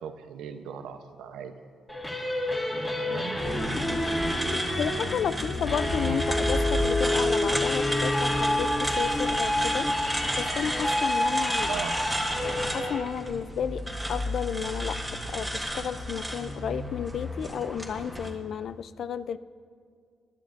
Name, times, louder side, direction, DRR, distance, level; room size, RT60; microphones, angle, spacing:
voice 1, 0.0-1.5 2.9-3.4 11.7-12.0, right 8 dB, 85° right, 8 dB, 0.8 m, -38 dB
sound 1, 1.9-13.0, left 1 dB, 15° left, 2.4 m, -28 dB
sound 2, 3.4-18.3, equal, 5° right, 1.6 m, -32 dB
voice 2, 4.5-9.9 10.4-11.7 12.7-13.8 14.1-19.4, left 8 dB, 60° left, 14 dB, 0.4 m, -32 dB
23.0 x 11.0 x 2.6 m, 2.1 s
cardioid pair, 90°, 0 cm